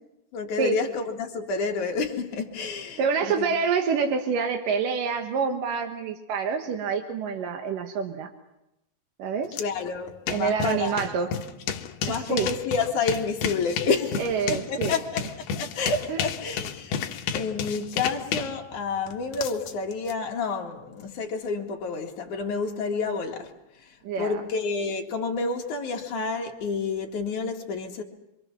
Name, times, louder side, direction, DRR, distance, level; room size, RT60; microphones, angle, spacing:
voice 1, 0.3-3.4 9.6-11.0 12.0-15.2 15.6-17.1 17.3-23.5 24.2-28.0, left 4 dB, 50° left, 2.9 m, -29 dB
voice 2, 3.0-8.3 9.2-9.5 10.3-11.3 12.1-12.5 14.2-14.9 16.1-16.2 24.0-24.4, right 6 dB, 60° right, 2.5 m, -27 dB
sound 1, 9.5-9.6 9.9-20.1, left 7 dB, 65° left, 2.9 m, -32 dB
26.5 x 26.0 x 6.2 m
omnidirectional pair, 5.4 m